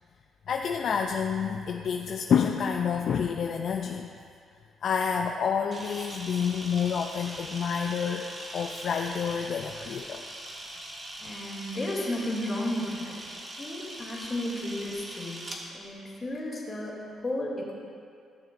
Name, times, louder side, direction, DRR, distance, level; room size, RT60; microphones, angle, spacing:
voice 1, 0.5-4.1 4.8-8.2 8.5-10.2, left 7 dB, 60° left, 3 dB, 0.4 m, -28 dB
Camera, 5.7-15.6, right 1 dB, 35° right, 1.4 m, -41 dB
voice 2, 11.2-17.7, left 1 dB, 30° left, -5 dB, 2.4 m, -34 dB
15.0 x 6.6 x 2.6 m, 2.3 s
cardioid pair, 90°, 0 cm